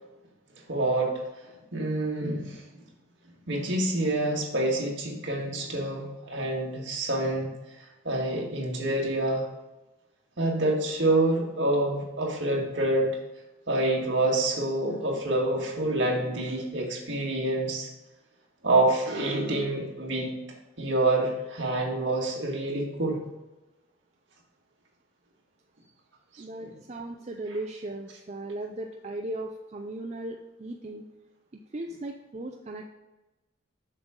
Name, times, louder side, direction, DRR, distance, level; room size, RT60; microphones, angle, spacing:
voice 1, 0.7-1.1 1.7-2.7 3.5-7.5 8.0-9.5 10.4-13.2 13.7-17.9 18.6-20.3 20.8-23.2 26.6-26.7, right 2 dB, 60° right, -2 dB, 2.0 m, -27 dB
voice 2, 26.4-31.0 31.7-32.9, right 2 dB, 30° right, 2 dB, 0.4 m, -37 dB
7.5 x 6.3 x 3.7 m, 1.1 s
head